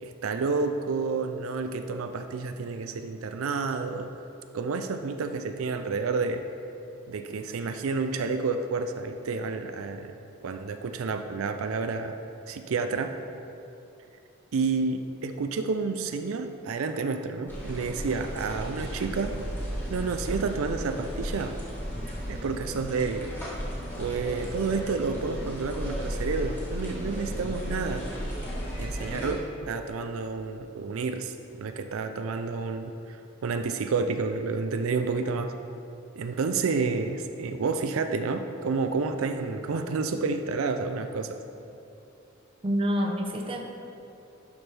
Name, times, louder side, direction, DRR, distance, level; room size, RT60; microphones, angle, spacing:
voice 1, 0.0-4.1 4.5-6.4 7.1-10.1 10.4-12.1 12.5-13.1 14.5-19.3 19.9-21.5 22.3-23.3 24.0-28.0 28.8-35.5 36.2-41.4, right 4 dB, 80° right, 7 dB, 0.4 m, -30 dB
sound 1, 17.5-29.3, equal, 10° left, 1.5 m, -34 dB
voice 2, 42.6-43.6, equal, 25° right, 2 dB, 0.7 m, -27 dB
11.0 x 6.0 x 3.4 m, 2.8 s
head